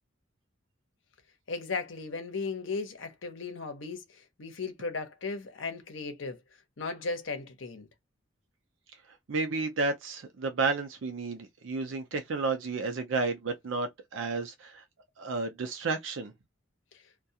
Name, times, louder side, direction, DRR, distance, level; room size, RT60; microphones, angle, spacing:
voice 1, 1.5-6.4 6.8-7.9 16.9-17.0, left 4 dB, 70° left, 0.8 m, -36 dB
voice 2, 9.3-14.8 15.2-16.3, right 3 dB, 70° right, 0.5 m, -32 dB
2.3 x 2.2 x 2.7 m
head